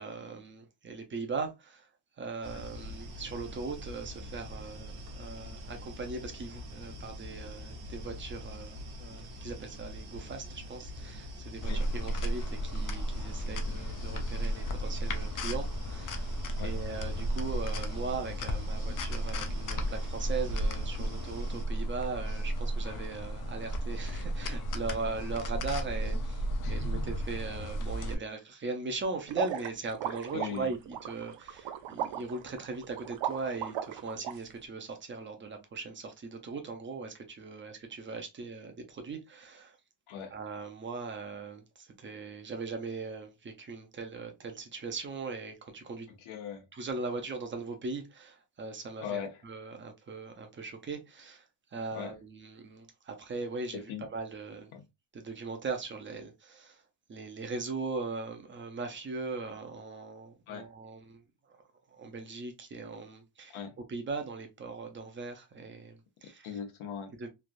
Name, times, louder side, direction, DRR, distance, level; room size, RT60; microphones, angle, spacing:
voice 1, 0.0-1.9 2.2-16.3 16.6-39.8 40.3-46.1 46.7-51.5 51.7-53.8 54.1-54.7 55.1-56.8 57.1-61.6 62.0-63.6 63.9-66.5 67.2-67.3, right 4 dB, 25° right, 0.5 m, -39 dB
sound 1, 2.4-21.7, left 1 dB, 50° right, 0.9 m, -42 dB
sound 2, 11.6-28.1, right 1 dB, 45° left, 0.5 m, -34 dB
voice 2, 26.6-27.1 30.3-30.7 40.1-40.3 46.2-46.6 49.0-49.4 51.9-52.1 53.7-54.1 54.7-54.8 60.5-60.7 63.5-63.8 66.4-67.2, left 7 dB, 80° left, 0.9 m, -39 dB
sound 3, 29.3-34.3, right 10 dB, 75° right, 0.6 m, -36 dB
3.2 x 2.4 x 2.5 m
cardioid pair, 170°, 47 cm